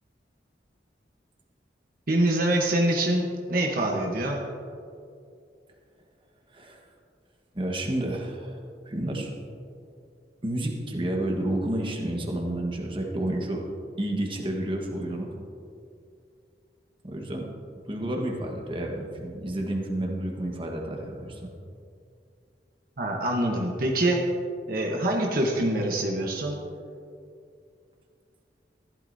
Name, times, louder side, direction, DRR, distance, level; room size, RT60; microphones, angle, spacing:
voice 1, 2.1-4.4 23.0-24.2 24.7-26.6, right 1 dB, 55° right, 0 dB, 1.0 m, -25 dB
voice 2, 7.5-8.6 8.8-9.3 10.4-13.6 14.0-15.3 17.0-17.5 17.9-21.5, right 1 dB, 30° right, 1 dB, 1.3 m, -30 dB
14.5 x 12.0 x 2.7 m, 2.4 s
head